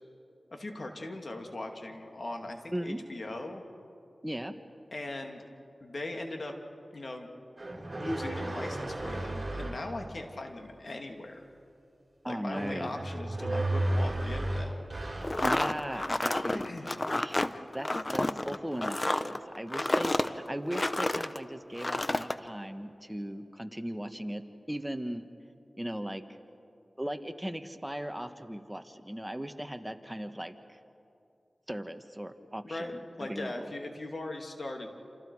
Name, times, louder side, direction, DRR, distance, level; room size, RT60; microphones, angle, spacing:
voice 1, 0.5-3.6 4.9-5.5 5.8-6.5 6.9-7.3 7.7-11.5 12.2-14.7 16.6-17.0 32.6-34.9, left 2 dB, 60° left, 3 dB, 2.6 m, -39 dB
voice 2, 2.7-3.0 4.2-4.5 12.2-13.0 15.4-16.7 17.1-17.4 17.7-24.4 24.7-25.3 25.8-26.2 27.0-30.8 31.7-33.7, equal, 10° right, 8 dB, 1.4 m, -38 dB
sound 1, 7.6-9.9 12.5-15.6, right 1 dB, 35° right, 5.2 m, -33 dB
sound 2, 15.2-21.4 21.8-22.4, left 2 dB, 35° left, 0.9 m, -30 dB
28.0 x 27.5 x 4.9 m, 2.6 s
cardioid pair, 40°, 0 cm